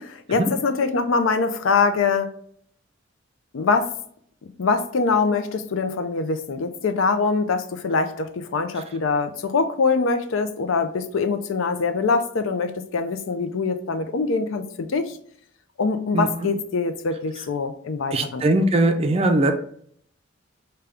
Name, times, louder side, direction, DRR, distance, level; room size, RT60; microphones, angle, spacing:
voice 1, 0.0-2.3 3.5-3.9 4.6-15.2 15.8-18.5, left 4 dB, 75° left, 8 dB, 0.4 m, -23 dB
voice 2, 18.1-19.5, right 2 dB, 30° right, 5 dB, 0.4 m, -20 dB
5.1 x 2.3 x 3.4 m, 0.63 s
head